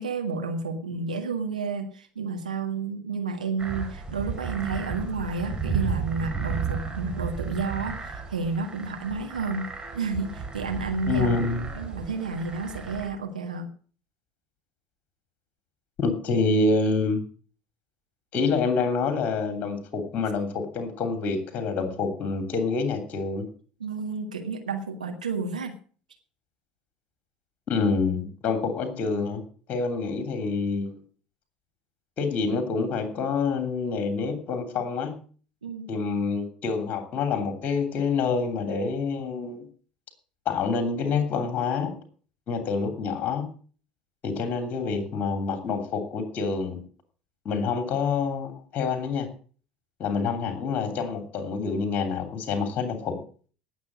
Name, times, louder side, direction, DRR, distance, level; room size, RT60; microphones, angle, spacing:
voice 1, 0.0-9.7 9.9-11.3 11.7-13.7 23.8-25.7 35.6-35.9, right 4 dB, 80° right, 4 dB, 1.8 m, -31 dB
sound 1, 3.6-13.1, right 5 dB, 20° right, 4.4 m, -33 dB
voice 2, 11.1-11.7 16.0-17.2 18.3-23.5 27.7-29.4 29.7-30.9 32.2-35.2 35.9-39.6 40.4-41.9 42.5-43.5 44.2-46.8 47.4-49.3 50.0-53.2, left 4 dB, 40° left, 7 dB, 3.0 m, -27 dB
18.0 x 7.3 x 6.2 m, 0.42 s
figure-of-eight pair, 65°, 4 cm